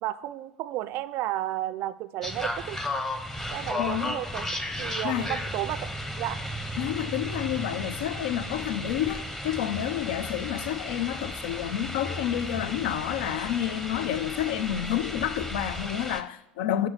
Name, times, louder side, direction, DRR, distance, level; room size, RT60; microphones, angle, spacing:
voice 1, 0.0-2.8 3.5-4.5 4.8-5.9 6.2-6.4, right 14 dB, 50° right, 0.4 m, -32 dB
sound 1, 2.2-16.2, left 1 dB, 10° left, 0.8 m, -34 dB
voice 2, 3.8-4.1 5.0-5.3 6.8-16.9, left 12 dB, 65° left, 0.4 m, -29 dB
7.4 x 4.7 x 5.7 m
hypercardioid pair, 75°, 5 cm